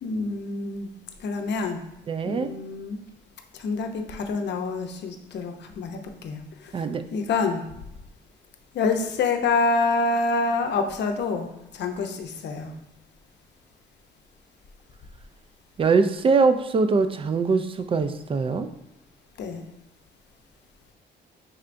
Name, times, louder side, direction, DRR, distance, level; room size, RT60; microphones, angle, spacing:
voice 1, 0.0-0.9 1.2-1.8 2.2-3.0 3.5-7.6 8.7-12.7 19.4-19.6, left 3 dB, 60° left, 4 dB, 0.6 m, -27 dB
voice 2, 2.1-2.5 6.7-7.0 15.8-18.7, right 4 dB, 30° right, 10 dB, 0.4 m, -22 dB
5.5 x 3.3 x 2.5 m, 0.89 s
cardioid pair, 90°, 20 cm